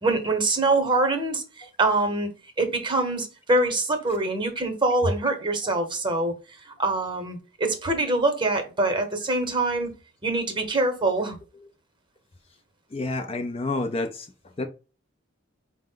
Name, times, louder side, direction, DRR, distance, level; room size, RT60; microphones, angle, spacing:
voice 1, 0.0-2.3 2.6-6.3 6.8-11.4, right 2 dB, 25° right, 0.9 m, -24 dB
voice 2, 12.9-14.3 14.6-14.7, left 2 dB, 30° left, 0.4 m, -28 dB
4.9 x 2.1 x 3.7 m
head